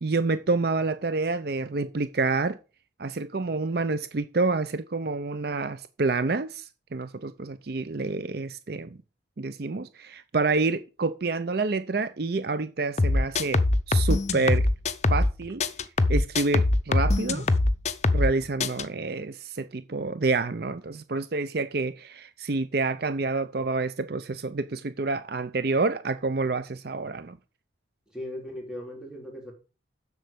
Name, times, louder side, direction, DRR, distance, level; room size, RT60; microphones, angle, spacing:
voice 1, 0.0-2.6 3.0-9.0 9.4-14.7 15.1-15.6 16.1-17.5 18.1-27.4, right 3 dB, 55° right, 0.6 m, -28 dB
sound 1, 13.0-15.3 15.6-18.3 18.6-18.8, left 2 dB, 35° left, 0.7 m, -22 dB
voice 2, 28.1-29.5, left 1 dB, 5° right, 3.6 m, -38 dB
7.6 x 6.9 x 6.8 m
head